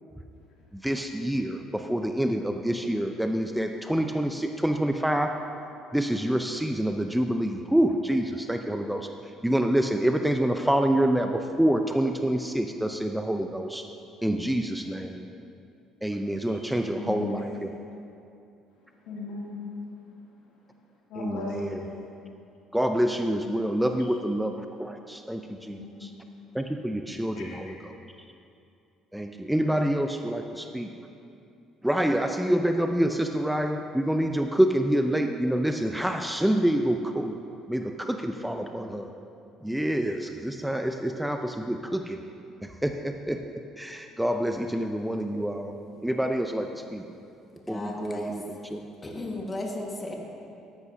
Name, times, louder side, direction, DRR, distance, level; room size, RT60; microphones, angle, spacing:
voice 1, 0.8-5.4 5.9-9.1 9.4-13.8 14.2-15.3 16.0-17.7 21.2-21.7 22.7-24.5 24.8-26.1 26.5-27.7 29.1-30.9 31.8-37.4 37.7-39.1 39.6-42.2 42.8-43.4 43.8-45.7 46.0-47.0 47.7-48.8, right 1 dB, 5° right, 5 dB, 0.6 m, -27 dB
voice 2, 16.9-17.9 18.7-19.8 20.1-21.9 24.0-24.1 25.5-26.2 27.3-27.8, left 3 dB, 70° left, -5 dB, 2.7 m, -39 dB
voice 3, 47.7-48.3 49.0-50.1, left 1 dB, 25° left, 0 dB, 1.7 m, -34 dB
13.5 x 11.0 x 2.8 m, 2.6 s
hypercardioid pair, 60°, 0 cm